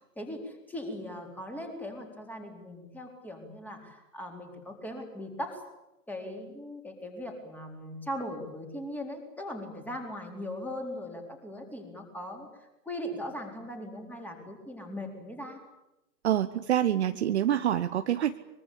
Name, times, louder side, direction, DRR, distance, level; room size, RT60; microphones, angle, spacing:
voice 1, 0.2-5.6 6.1-15.6, left 1 dB, 5° left, 3 dB, 4.2 m, -39 dB
voice 2, 16.2-18.4, right 11 dB, 40° right, 10 dB, 1.1 m, -26 dB
24.0 x 23.5 x 8.5 m, 0.95 s
figure-of-eight pair, 125°, 49 cm